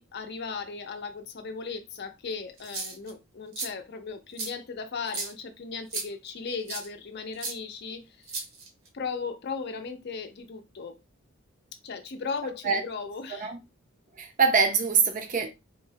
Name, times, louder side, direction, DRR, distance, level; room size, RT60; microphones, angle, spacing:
voice 1, 0.0-8.3 8.9-11.0 11.8-13.5, left 5 dB, 50° left, 0.5 m, -37 dB
sound 1, 2.6-3.1 3.5-3.7 4.4-4.5 5.1-5.3 5.9-6.1 6.7-6.9 7.4-7.5 8.3-8.9, right 4 dB, 75° right, 0.9 m, -34 dB
voice 2, 14.2-15.5, right 5 dB, 40° right, 0.5 m, -24 dB
3.8 x 2.0 x 2.7 m
head